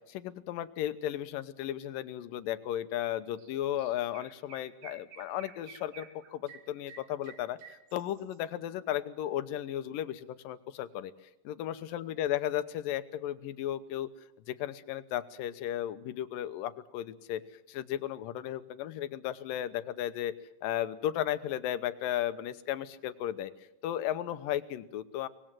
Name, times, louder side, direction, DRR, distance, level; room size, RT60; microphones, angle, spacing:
voice 1, 0.1-11.1 11.4-14.1 14.5-17.4 17.7-20.3 20.6-23.5 23.8-25.3, left 12 dB, 80° left, 12 dB, 2.6 m, -35 dB
Chirp tweet, 3.4-3.5 3.8-8.4, right 6 dB, 85° right, 3.9 m, -52 dB
24.5 x 20.0 x 7.6 m, 0.88 s
omnidirectional pair, 4.0 m